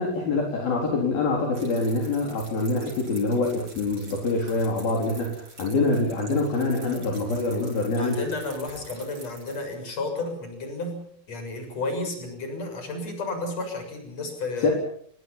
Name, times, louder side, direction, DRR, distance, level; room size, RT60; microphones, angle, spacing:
voice 1, 0.0-8.2 14.6-14.7, left 3 dB, 60° left, 0 dB, 5.6 m, -25 dB
sound 1, 1.5-9.6, right 2 dB, 30° right, 8.4 m, -47 dB
voice 2, 7.8-11.0 11.3-14.7, left 2 dB, 40° left, 5 dB, 8.0 m, -32 dB
28.0 x 23.5 x 5.7 m, 0.64 s
omnidirectional pair, 4.9 m